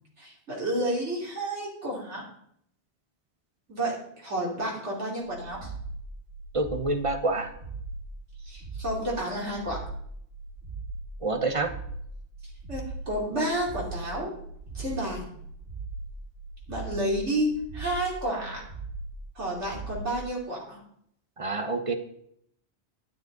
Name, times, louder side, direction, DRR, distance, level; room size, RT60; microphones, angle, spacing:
voice 1, 0.2-2.2 3.7-5.7 8.5-9.8 12.7-14.3 14.7-15.3 16.7-18.6 19.4-20.8, right 1 dB, 85° right, -4 dB, 3.4 m, -30 dB
sound 1, 5.2-20.2, right 3 dB, 65° right, 1.6 m, -39 dB
voice 2, 6.5-7.5 11.2-11.7 21.4-21.9, right 2 dB, 30° right, 8 dB, 0.9 m, -27 dB
11.0 x 9.4 x 3.9 m, 0.69 s
omnidirectional pair, 1.2 m